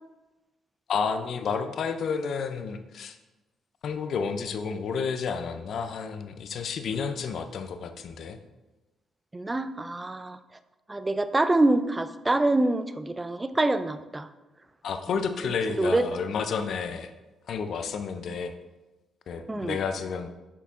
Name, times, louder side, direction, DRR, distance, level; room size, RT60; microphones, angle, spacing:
voice 1, 0.9-3.2 3.8-8.4 14.8-17.1 17.5-18.5 19.3-20.3, left 6 dB, 65° left, 9 dB, 0.5 m, -31 dB
voice 2, 9.3-10.4 10.9-14.3 15.8-16.1 19.5-19.8, right 2 dB, 15° right, 11 dB, 0.4 m, -25 dB
7.0 x 4.7 x 3.6 m, 1.1 s
cardioid pair, 90°, 0 cm